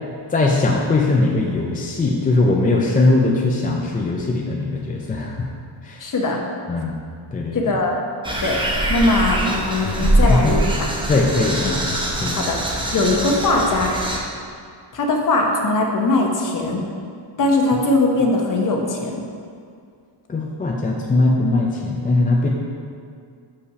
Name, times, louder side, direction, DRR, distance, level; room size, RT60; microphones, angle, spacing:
voice 1, 0.3-5.5 5.8-6.0 6.7-7.0 7.3-7.6 9.8-10.6 11.1-11.9 12.2-12.4 20.3-22.5, left 2 dB, 20° left, -1 dB, 0.4 m, -20 dB
voice 2, 6.0-6.5 6.8-6.9 7.5-7.9 8.4-8.6 8.9-10.6 12.3-12.6 12.9-13.9 14.9-16.8 17.4-19.2, left 2 dB, 40° left, 1 dB, 1.0 m, -20 dB
sound 1, 8.2-14.2, right 1 dB, 10° right, 0.7 m, -23 dB
6.4 x 5.8 x 5.5 m, 2.2 s
wide cardioid pair, 180°, 47 cm